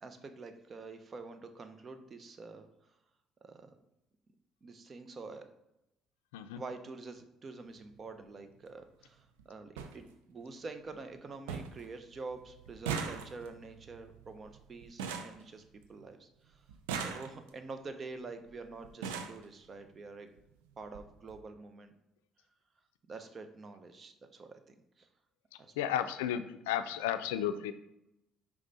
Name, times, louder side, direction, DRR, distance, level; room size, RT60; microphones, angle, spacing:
voice 1, 0.0-3.0 3.4-3.7 4.6-5.5 6.5-15.6 15.9-20.3 20.8-21.9 23.1-25.1 25.6-26.1, right 3 dB, 40° right, 8 dB, 0.8 m, -47 dB
sound 1, 7.6-7.8 9.1-9.2 9.4-9.5 9.8-9.9 10.4-10.9 11.1-11.2 11.5-11.9 12.1-16.1 16.7-17.7 18.5-18.6 18.8-19.4 20.4-20.5 20.8-21.0 21.3-21.4, right 6 dB, 80° right, 0.6 m, -40 dB
voice 2, 25.8-27.7, left 10 dB, 80° left, 11 dB, 0.4 m, -33 dB
5.2 x 4.9 x 4.0 m, 0.88 s
hypercardioid pair, 55°, 0 cm